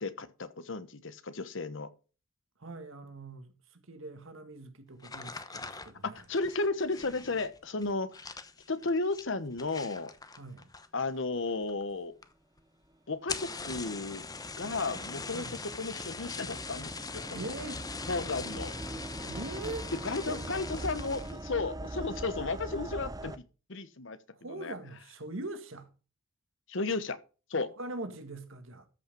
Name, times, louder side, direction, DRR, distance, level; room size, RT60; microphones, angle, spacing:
voice 1, 0.0-1.9 6.0-8.4 8.7-10.1 10.9-12.1 13.1-14.2 14.6-17.2 18.1-18.7 20.0-23.4 23.7-24.7 26.7-27.2 27.5-27.7, left 3 dB, 65° left, 1.1 m, -34 dB
voice 2, 2.6-6.2 10.4-10.7 15.3-15.6 17.3-17.9 19.2-19.9 20.3-20.4 20.7-20.9 24.3-25.9 27.6-28.9, right 2 dB, 70° right, 1.9 m, -42 dB
sound 1, 5.0-11.1 11.4-11.9 12.2-12.3 12.6-12.7 13.1-21.5 21.9-22.3 22.7-23.1, left 4 dB, 20° left, 0.9 m, -42 dB
sound 2, 14.0-23.4, right 1 dB, 20° right, 0.5 m, -42 dB
13.5 x 5.8 x 5.4 m
head